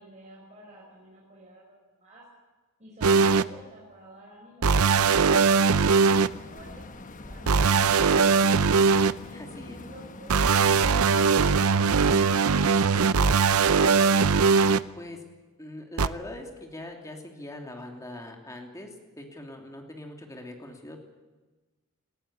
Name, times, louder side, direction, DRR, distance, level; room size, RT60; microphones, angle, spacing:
voice 1, 0.0-2.3 2.8-6.9 7.2-8.3 9.2-10.4, right 1 dB, 35° right, -4 dB, 5.5 m, -50 dB
sound 1, 3.0-3.4 4.6-6.3 7.5-9.1 10.3-14.8 16.0-16.1, right 5 dB, 80° right, 0.6 m, -20 dB
sound 2, 6.1-12.8, left 2 dB, 40° left, 1.1 m, -44 dB
voice 2, 9.3-9.8 15.0-15.2 15.6-21.0, left 1 dB, 15° left, 2 dB, 2.9 m, -42 dB
19.5 x 14.5 x 9.9 m, 1.2 s
head